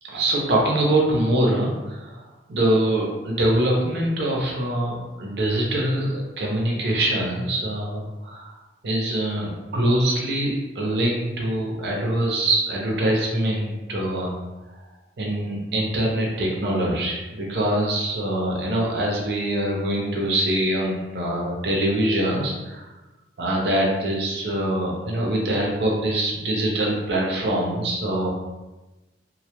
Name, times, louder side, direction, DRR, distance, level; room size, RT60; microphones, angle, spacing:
voice 1, 0.1-2.2 2.5-8.5 8.8-14.3 15.2-22.9 23.4-28.3, right 1 dB, 70° right, -2 dB, 0.5 m, -24 dB
2.1 x 2.1 x 2.9 m, 1.1 s
head